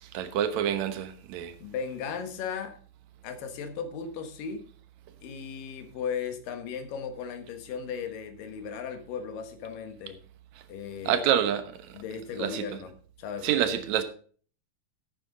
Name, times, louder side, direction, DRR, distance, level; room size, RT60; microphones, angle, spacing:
voice 1, 0.0-1.5 11.1-12.0 12.4-12.6 13.4-14.0, right 10 dB, 65° right, 2.2 m, -27 dB
voice 2, 1.6-2.8 3.2-4.6 5.2-10.2 10.7-11.2 11.9-12.9 13.2-13.8, left 6 dB, 80° left, 3.0 m, -36 dB
11.5 x 8.8 x 3.9 m
omnidirectional pair, 3.9 m